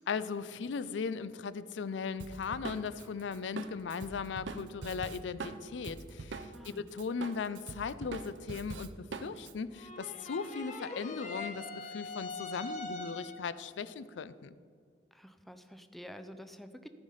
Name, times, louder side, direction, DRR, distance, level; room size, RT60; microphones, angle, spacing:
voice 1, 0.1-14.5, left 5 dB, 80° left, 15 dB, 0.4 m, -38 dB
Drum kit, 2.2-6.7 7.0-9.5, right 4 dB, 85° right, 0.6 m, -43 dB
voice 2, 6.5-6.9 15.1-16.9, equal, ahead, 8 dB, 0.4 m, -49 dB
sound 1, 9.7-13.6, left 3 dB, 45° left, 1.2 m, -42 dB
14.0 x 5.0 x 5.5 m, 2.1 s
head